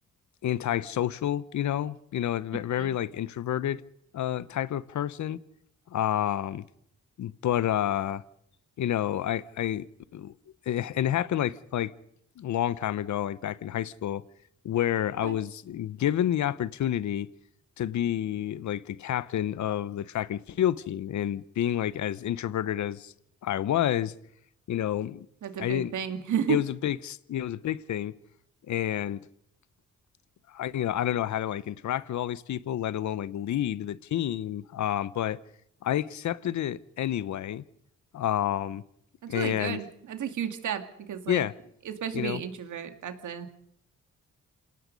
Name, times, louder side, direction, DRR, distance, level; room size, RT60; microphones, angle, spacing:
voice 1, 0.4-3.8 4.1-5.4 5.9-6.6 7.2-8.2 8.8-9.9 10.1-10.3 10.7-11.9 12.4-14.2 14.6-17.3 17.8-23.1 23.4-24.1 24.7-25.3 25.6-25.9 26.5-28.1 28.7-29.2 30.5-35.4 35.8-37.6 38.1-38.8 39.3-39.8 41.3-41.5 42.1-42.4, left 11 dB, 70° left, 0.9 m, -29 dB
voice 2, 25.4-26.6 39.2-41.4 41.8-43.5, right 8 dB, 75° right, 2.3 m, -32 dB
27.5 x 18.5 x 5.3 m
cardioid pair, 75°, 30 cm